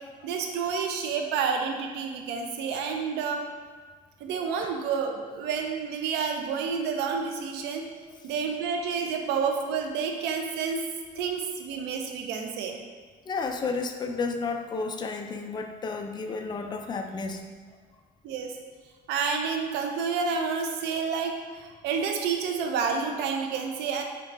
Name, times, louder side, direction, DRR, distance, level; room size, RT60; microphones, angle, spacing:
voice 1, 0.2-3.4 4.2-7.8 8.2-10.8 11.2-12.8 18.2-18.5 19.1-24.0, right 6 dB, 85° right, 3 dB, 0.5 m, -29 dB
voice 2, 13.3-17.5, left 4 dB, 25° left, 5 dB, 0.3 m, -32 dB
4.5 x 3.1 x 2.5 m, 1.5 s
cardioid pair, 110°, 17 cm